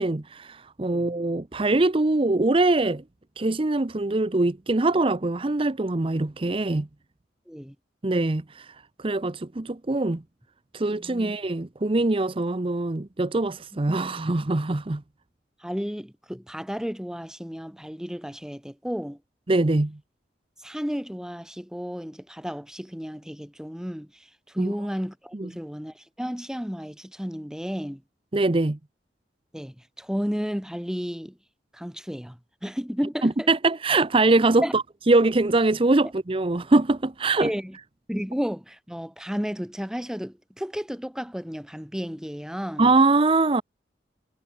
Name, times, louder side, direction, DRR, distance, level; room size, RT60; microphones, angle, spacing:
voice 1, 0.0-3.0 3.4-6.9 8.0-10.2 10.7-15.0 19.5-20.0 24.6-24.7 25.3-25.5 28.3-28.8 33.2-37.5 42.8-43.6, right 2 dB, 30° right, 0.7 m, -23 dB
voice 2, 10.9-11.3 14.2-14.3 15.6-19.2 20.6-24.1 24.5-28.0 29.5-31.3 31.7-33.5 34.6-34.7 37.4-37.7 38.1-42.9, equal, 5° right, 1.7 m, -32 dB
head